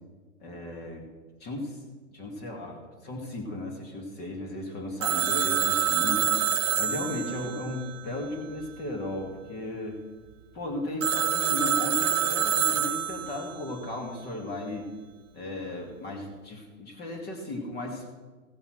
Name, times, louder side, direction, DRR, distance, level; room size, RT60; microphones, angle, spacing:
voice 1, 0.4-1.1 1.4-1.8 2.1-6.3 6.8-10.0 10.5-14.9 15.3-18.1, left 1 dB, 25° left, 2 dB, 2.1 m, -35 dB
Telephone, 5.0-8.6 11.0-13.5, right 9 dB, 25° right, 0.4 m, -27 dB
15.5 x 5.5 x 6.1 m, 1.4 s
hypercardioid pair, 125°, 40 cm